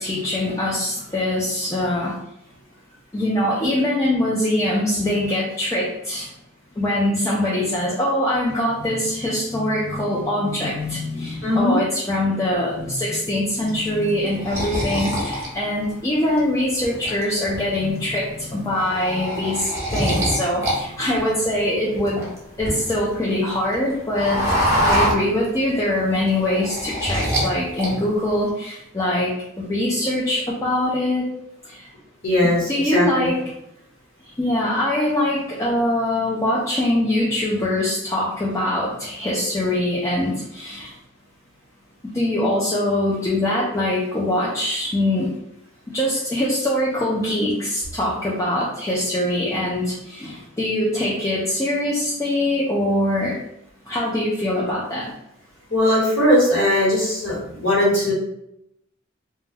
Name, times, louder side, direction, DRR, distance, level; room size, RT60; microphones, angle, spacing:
voice 1, 0.0-2.2 3.1-6.3 6.8-22.3 22.6-24.4 24.8-31.3 31.6-31.9 32.4-33.5 34.4-40.9 42.1-45.3 45.9-53.4 53.9-55.1, left 1 dB, 15° left, -6 dB, 0.4 m, -23 dB
voice 2, 11.4-11.8 32.2-33.3 55.7-58.1, left 1 dB, 75° left, -6 dB, 1.2 m, -19 dB
sound 1, 13.7-16.4 16.8-17.6 17.9-18.2 18.5-20.8 21.0-23.1 23.4-25.8 26.1-27.5 27.8-28.4, equal, 15° right, 0.8 m, -24 dB
2.2 x 2.1 x 3.3 m, 0.80 s
head